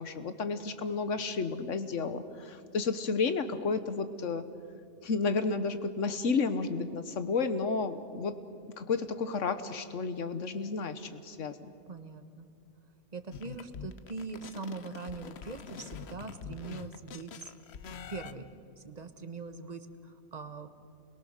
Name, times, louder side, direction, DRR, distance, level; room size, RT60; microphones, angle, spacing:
voice 1, 0.0-4.4 5.0-8.3 8.8-11.7, left 4 dB, 80° left, 10 dB, 1.5 m, -32 dB
voice 2, 11.9-12.5 13.1-17.5 18.1-18.5 18.8-20.7, right 4 dB, 35° right, 8 dB, 1.3 m, -42 dB
sound 1, 13.3-18.3, left 7 dB, 60° left, 1.0 m, -45 dB
28.0 x 21.5 x 6.6 m, 2.4 s
omnidirectional pair, 1.3 m